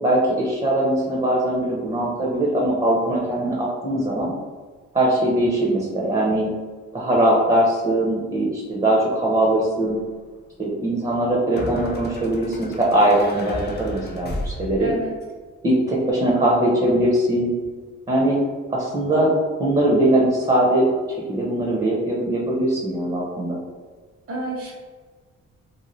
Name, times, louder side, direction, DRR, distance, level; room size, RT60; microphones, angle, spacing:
voice 1, 0.0-4.3 4.9-6.5 6.9-10.0 10.6-14.9 15.6-17.5 18.1-18.4 18.7-19.3 19.6-20.9 21.3-23.6, right 1 dB, 20° right, -5 dB, 0.7 m, -21 dB
sound 1, 9.9-10.0 11.6-15.1, left 1 dB, 35° left, 0.6 m, -33 dB
voice 2, 14.8-15.1 24.3-24.7, right 1 dB, 50° right, -3 dB, 1.1 m, -29 dB
2.7 x 2.4 x 3.0 m, 1.4 s
cardioid pair, 90°, 29 cm